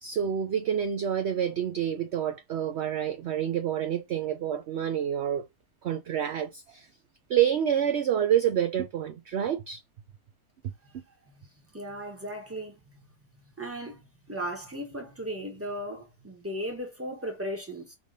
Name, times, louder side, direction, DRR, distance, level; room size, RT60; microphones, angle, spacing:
voice 1, 0.0-5.4 5.8-6.9 7.3-9.8, right 9 dB, 60° right, 0.7 m, -28 dB
voice 2, 11.7-13.0 13.6-14.0 14.3-18.0, equal, 10° right, 1.6 m, -36 dB
5.2 x 3.5 x 5.2 m
omnidirectional pair, 1.7 m